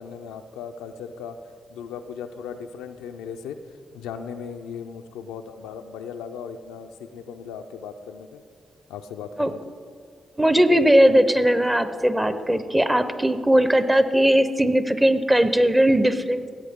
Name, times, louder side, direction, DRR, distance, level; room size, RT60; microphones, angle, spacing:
voice 1, 0.0-1.4 1.7-3.6 3.9-8.4 8.9-9.6, left 7 dB, 90° left, 6 dB, 0.4 m, -37 dB
voice 2, 10.4-16.5, equal, 15° right, 11 dB, 0.8 m, -19 dB
16.5 x 7.7 x 3.6 m, 2.1 s
supercardioid pair, 45°, 0 cm